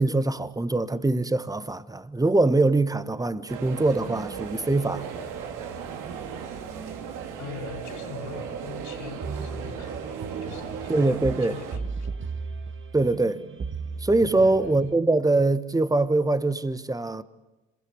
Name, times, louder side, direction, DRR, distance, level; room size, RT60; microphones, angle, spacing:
voice 1, 0.0-5.0 10.9-11.6 12.9-13.4 14.0-17.2, right 2 dB, 10° right, 1.5 m, -23 dB
sound 1, 3.5-11.8, right 7 dB, 70° right, 3.0 m, -36 dB
sound 2, 4.7-15.0, right 4 dB, 35° right, 1.9 m, -38 dB
voice 2, 7.4-12.2 14.3-14.8, left 6 dB, 65° left, 5.7 m, -42 dB
26.5 x 22.5 x 9.8 m
supercardioid pair, 75°, 32 cm